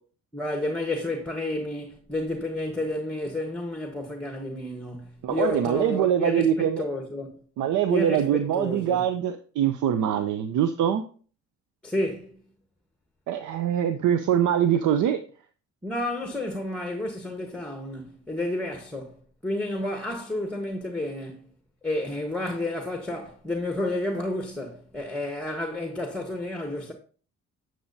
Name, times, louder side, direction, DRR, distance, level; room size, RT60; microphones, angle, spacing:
voice 1, 0.3-7.4 7.9-9.0 11.8-12.4 15.8-19.2 19.4-21.4 21.8-26.9, left 1 dB, 5° left, 1.2 m, -31 dB
voice 2, 5.2-6.8 7.6-11.0 13.3-15.2, right 9 dB, 80° right, 0.6 m, -23 dB
8.7 x 7.6 x 2.7 m
cardioid pair, 90°, 30 cm